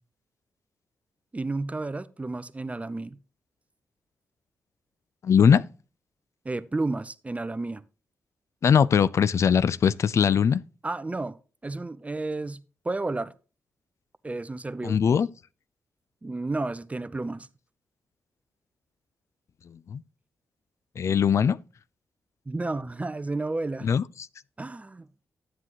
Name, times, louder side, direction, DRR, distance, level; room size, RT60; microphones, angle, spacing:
voice 1, 1.3-3.2 6.4-7.8 10.8-11.4 11.6-13.3 14.2-15.0 16.2-17.5 22.5-23.9 24.6-25.1, right 2 dB, 25° right, 0.7 m, -32 dB
voice 2, 5.2-5.6 8.6-10.6 14.8-15.3 19.9-20.0 21.0-21.6 23.8-24.0, left 7 dB, 60° left, 0.5 m, -20 dB
11.0 x 7.6 x 3.0 m
supercardioid pair, 45°, 6 cm